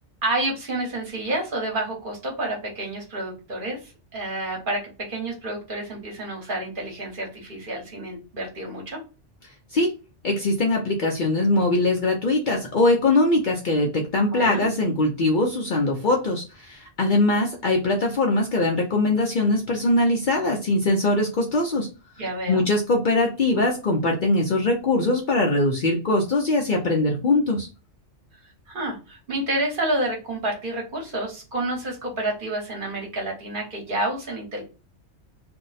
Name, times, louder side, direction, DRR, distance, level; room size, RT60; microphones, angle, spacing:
voice 1, 0.2-9.0 14.3-14.7 22.2-22.7 28.7-34.6, right 1 dB, 50° right, 0 dB, 1.2 m, -29 dB
voice 2, 10.2-21.9 22.5-27.7, left 2 dB, 50° left, 0 dB, 0.7 m, -22 dB
2.6 x 2.1 x 3.9 m, 0.31 s
omnidirectional pair, 1.2 m